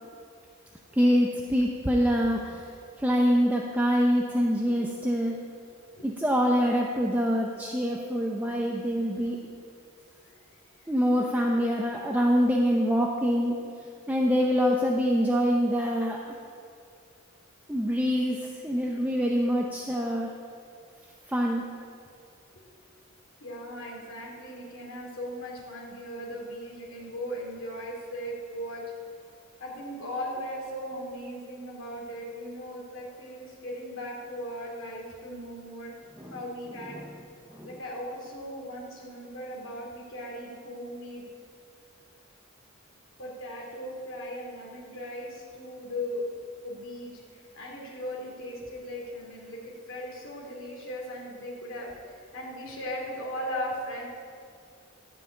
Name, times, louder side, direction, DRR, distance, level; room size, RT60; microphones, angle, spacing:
voice 1, 1.0-2.7 3.0-5.4 6.0-9.5 10.9-13.5 14.1-16.4 17.7-20.3 21.3-21.7 36.2-36.4 36.9-37.1 37.6-37.7, equal, 10° right, 0 dB, 0.7 m, -25 dB
voice 2, 23.4-28.8 29.6-35.9 36.3-37.0 37.6-41.2 43.2-46.2 46.6-47.1 47.5-49.6 49.9-54.1, equal, 85° left, -3 dB, 2.6 m, -38 dB
14.0 x 5.6 x 8.6 m, 2.4 s
head